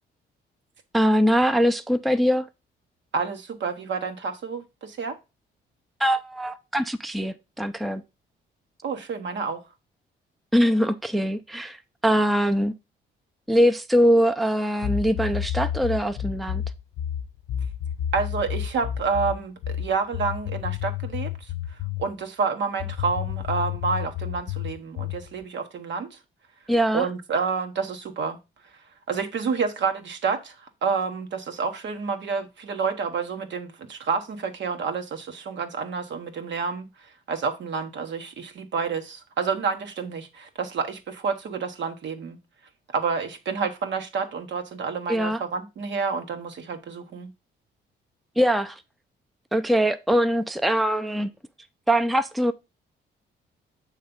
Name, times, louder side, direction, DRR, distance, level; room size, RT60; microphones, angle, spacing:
voice 1, 0.9-2.5 6.0-8.0 10.5-12.7 13.5-16.6 26.7-27.1 45.1-45.4 48.4-48.8 49.5-51.3 51.9-52.5, equal, ahead, 0.5 m, -22 dB
voice 2, 3.1-5.2 8.8-9.6 18.1-26.2 26.9-28.4 29.1-42.4 42.9-47.3, right 5 dB, 65° right, 1.2 m, -29 dB
sound 1, 14.8-22.1 22.8-25.3, left 10 dB, 70° left, 0.6 m, -30 dB
6.8 x 3.2 x 5.2 m
cardioid pair, 70°, 20 cm